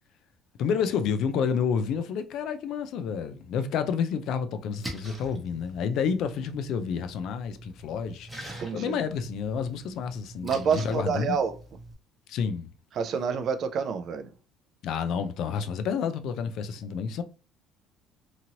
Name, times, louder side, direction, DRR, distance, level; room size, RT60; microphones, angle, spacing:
voice 1, 0.6-11.4 12.3-12.7 14.8-17.2, left 6 dB, 60° left, 0.3 m, -29 dB
Splash splatter, 4.6-11.9, right 1 dB, 5° right, 0.8 m, -44 dB
voice 2, 8.6-9.0 10.4-11.6 13.0-14.3, right 6 dB, 45° right, 0.4 m, -28 dB
2.9 x 2.5 x 2.8 m
cardioid pair, 145°, 0 cm